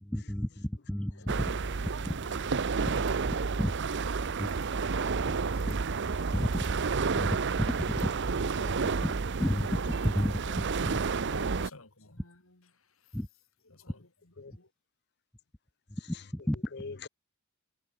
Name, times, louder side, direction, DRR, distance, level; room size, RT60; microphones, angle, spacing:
voice 1, 0.0-3.7 4.4-4.5 5.7-5.8 6.3-6.5 7.2-7.3 7.9-8.1 9.0-9.1 9.4-10.4 10.9-11.0 13.1-13.3 16.1-16.6, equal, 5° left, 0.5 m, -32 dB
voice 2, 1.1-3.6 4.8-5.8 6.7-7.7 11.3-13.2 13.7-14.7, left 3 dB, 70° left, 3.7 m, -55 dB
sound 1, 1.3-11.7, right 4 dB, 55° right, 0.7 m, -30 dB
voice 3, 5.3-5.7 8.6-8.8 10.5-10.9 11.3-11.4 14.4-14.5 16.1-16.2 16.7-17.1, left 4 dB, 50° left, 0.8 m, -45 dB
head